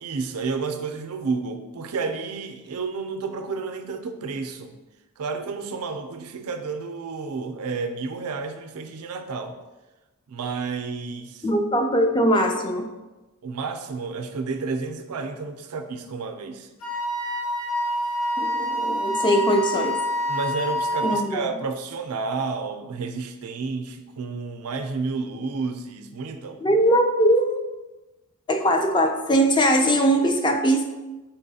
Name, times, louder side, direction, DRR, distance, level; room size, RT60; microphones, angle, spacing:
voice 1, 0.0-4.8 5.2-9.6 10.3-11.5 13.4-16.7 20.3-26.6, right 4 dB, 85° right, 7 dB, 0.4 m, -31 dB
voice 2, 11.4-12.9 18.4-20.0 21.0-21.4 26.6-27.6 28.5-30.8, equal, 20° left, 4 dB, 0.3 m, -21 dB
Wind instrument woodwind instrument, 16.8-21.3, left 1 dB, 75° left, 1.1 m, -26 dB
4.5 x 4.0 x 2.7 m, 1.1 s
head